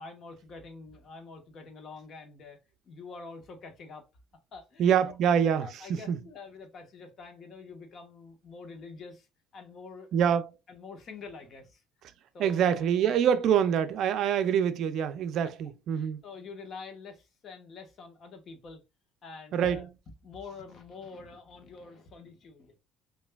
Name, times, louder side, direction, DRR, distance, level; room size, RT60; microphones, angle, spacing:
voice 1, 0.0-2.6 2.8-4.1 4.5-5.2 5.6-9.3 9.5-10.2 10.7-11.8 12.3-12.8 15.4-15.5 15.9-18.8 19.2-19.9 20.2-22.8, left 4 dB, 45° left, 1.0 m, -46 dB
voice 2, 4.8-6.2 10.1-10.5 12.4-16.2 19.5-19.8, right 8 dB, 60° right, 0.4 m, -25 dB
5.5 x 2.6 x 2.2 m
cardioid pair, 130°, 0 cm